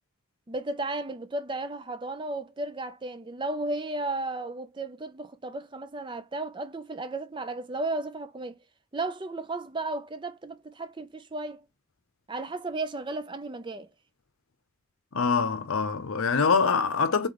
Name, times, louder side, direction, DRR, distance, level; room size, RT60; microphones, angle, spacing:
voice 1, 0.5-8.6 8.9-11.6 12.3-13.9, right 2 dB, 20° right, 0.4 m, -34 dB
voice 2, 15.1-17.3, left 5 dB, 75° left, 0.7 m, -24 dB
3.7 x 3.3 x 4.0 m
head